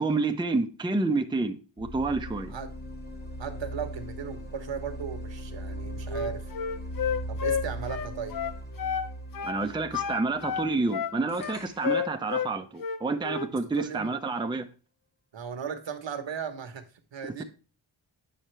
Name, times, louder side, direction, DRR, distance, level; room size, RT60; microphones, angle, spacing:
voice 1, 0.0-2.5 9.4-14.7 17.2-17.4, right 3 dB, 10° right, 0.6 m, -29 dB
sound 1, 1.8-11.6, equal, 20° left, 1.0 m, -39 dB
voice 2, 3.4-6.5 7.3-8.4 13.7-14.1 15.3-17.4, right 7 dB, 65° right, 1.1 m, -36 dB
Wind instrument woodwind instrument, 6.1-9.1 9.3-9.6 9.9-12.5 12.8-13.5, left 7 dB, 45° left, 0.7 m, -30 dB
sound 2, 11.3-12.1, left 2 dB, 75° left, 2.9 m, -49 dB
8.9 x 5.6 x 3.2 m
wide cardioid pair, 95°, 46 cm